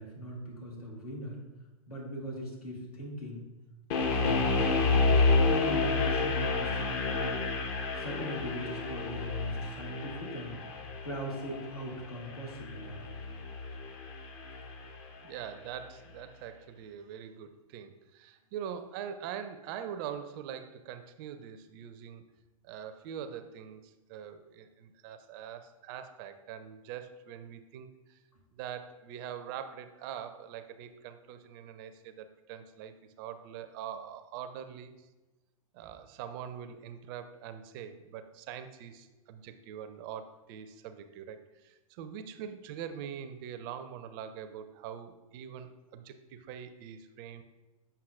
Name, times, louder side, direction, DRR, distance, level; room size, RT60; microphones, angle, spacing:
voice 1, 0.0-1.4 1.9-3.4 4.0-7.5 8.0-10.6 11.0-13.2, equal, 85° left, -3 dB, 1.9 m, -40 dB
sound 1, 3.9-15.0, left 3 dB, 40° left, 0.8 m, -30 dB
voice 2, 15.2-22.2 22.6-28.2 28.5-34.9 35.7-47.4, right 8 dB, 40° right, 10 dB, 0.5 m, -43 dB
7.8 x 5.5 x 2.4 m, 1.1 s
figure-of-eight pair, 105°, 19 cm